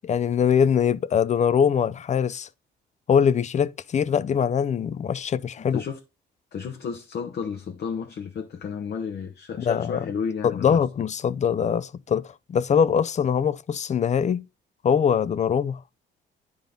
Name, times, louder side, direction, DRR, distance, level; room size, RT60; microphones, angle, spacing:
voice 1, 0.0-2.5 3.1-5.8 9.6-10.0 10.4-14.5 14.8-15.8, left 7 dB, 35° left, 0.4 m, -22 dB
voice 2, 6.5-10.8, left 6 dB, 55° left, 0.9 m, -32 dB
10.0 x 3.7 x 3.7 m
cardioid pair, 90°, 20 cm